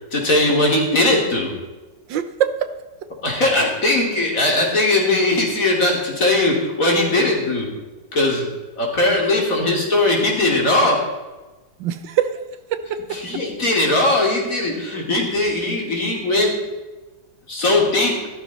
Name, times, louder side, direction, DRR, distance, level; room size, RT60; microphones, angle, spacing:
voice 1, 0.1-1.5 3.2-7.8 8.1-8.5 8.8-11.1 13.1-16.6 17.5-18.3, left 2 dB, 45° left, -1 dB, 3.3 m, -19 dB
voice 2, 2.1-2.7 3.0-3.1 9.6-9.7 11.8-12.4 12.7-13.4, right 9 dB, 80° right, 10 dB, 1.6 m, -24 dB
15.0 x 12.5 x 4.1 m, 1.2 s
omnidirectional pair, 2.0 m